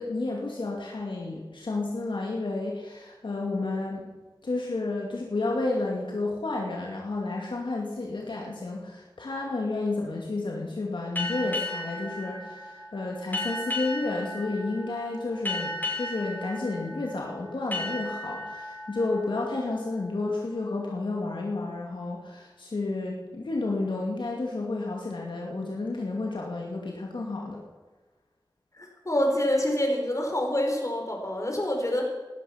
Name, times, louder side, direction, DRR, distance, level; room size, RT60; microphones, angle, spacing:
voice 1, 0.0-4.1 4.4-27.6, left 2 dB, 80° left, -1 dB, 2.3 m, -31 dB
sound 1, 11.1-20.4, left 2 dB, 20° left, 6.0 m, -35 dB
voice 2, 28.8-32.1, left 1 dB, 40° left, 2 dB, 4.5 m, -26 dB
18.0 x 12.0 x 5.9 m, 1.3 s
wide cardioid pair, 50°, 8 cm